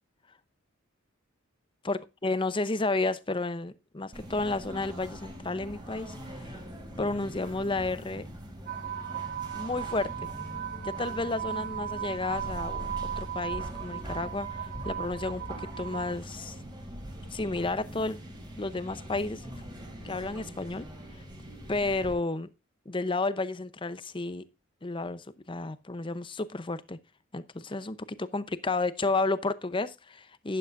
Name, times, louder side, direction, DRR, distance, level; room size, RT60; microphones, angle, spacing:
voice 1, 1.8-6.6 7.0-8.3 9.5-10.3 10.8-12.9 13.2-14.5 14.8-16.6 17.3-18.2 18.6-19.5 20.0-20.9 21.7-22.5 22.9-24.4 24.8-27.0 27.3-30.6, left 3 dB, 25° left, 0.7 m, -32 dB
sound 1, 4.1-22.1, equal, 20° right, 3.4 m, -42 dB
sound 2, 8.7-16.2, right 10 dB, 50° right, 2.9 m, -37 dB
12.0 x 11.0 x 2.5 m
head